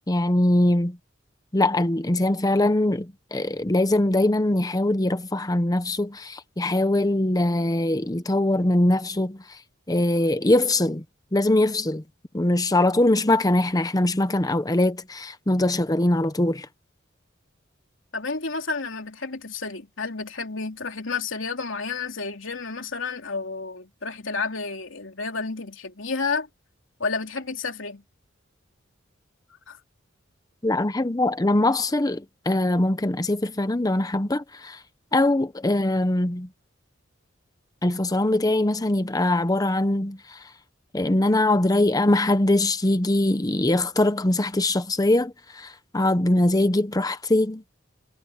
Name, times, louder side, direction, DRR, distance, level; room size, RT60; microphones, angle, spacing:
voice 1, 0.1-1.0 1.5-9.6 9.9-11.0 11.3-12.0 12.3-16.7 30.6-34.8 35.1-36.5 37.8-40.4 40.9-47.6, left 1 dB, 20° left, 0.8 m, -22 dB
voice 2, 18.1-26.5 27.0-28.0 29.7-29.8, left 4 dB, 80° left, 3.2 m, -31 dB
head